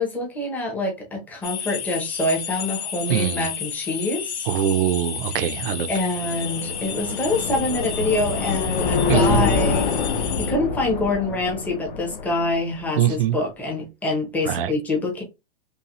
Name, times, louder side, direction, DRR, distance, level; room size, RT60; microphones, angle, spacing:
voice 1, 0.0-4.5 5.9-9.9 10.2-15.2, left 2 dB, 5° left, 0.7 m, -26 dB
sound 1, 1.4-10.5, left 8 dB, 85° left, 1.3 m, -32 dB
voice 2, 3.1-3.5 4.5-5.9 9.1-9.4 13.0-13.4 14.5-14.7, right 11 dB, 55° right, 0.6 m, -22 dB
sound 2, 5.5-12.9, left 4 dB, 45° left, 0.9 m, -26 dB
5.5 x 2.2 x 3.0 m
supercardioid pair, 170°, 34 cm